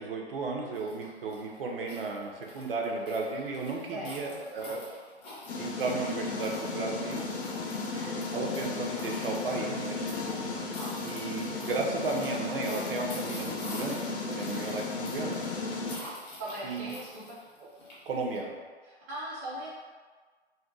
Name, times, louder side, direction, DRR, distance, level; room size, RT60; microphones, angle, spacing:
voice 1, 0.0-4.8 5.6-7.3 8.3-10.4 11.0-15.4 16.6-16.9 17.6-17.7 18.1-18.5, right 3 dB, 55° right, 0 dB, 0.6 m, -34 dB
sound 1, 0.7-18.4, left 1 dB, 25° left, 0.6 m, -47 dB
voice 2, 3.9-4.4 7.9-8.2 14.5-14.8 16.4-17.4 18.8-19.7, right 1 dB, 15° right, -8 dB, 0.3 m, -40 dB
sound 2, 5.5-16.0, left 3 dB, 75° left, 0.6 m, -35 dB
2.6 x 2.0 x 3.8 m, 1.5 s
hypercardioid pair, 135°, 33 cm